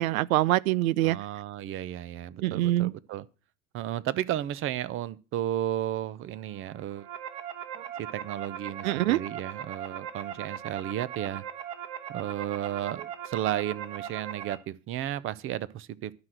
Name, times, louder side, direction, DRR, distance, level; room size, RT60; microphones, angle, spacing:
voice 1, 0.0-1.2 2.4-2.9 7.7-7.8 8.8-9.2, right 16 dB, 85° right, 0.6 m, -24 dB
voice 2, 1.0-3.2 3.7-7.1 8.0-11.4 12.1-16.1, right 12 dB, 30° right, 0.7 m, -33 dB
sound 1, 6.7-14.6, right 9 dB, 60° right, 1.9 m, -39 dB
12.0 x 6.0 x 7.7 m
supercardioid pair, 125°, 41 cm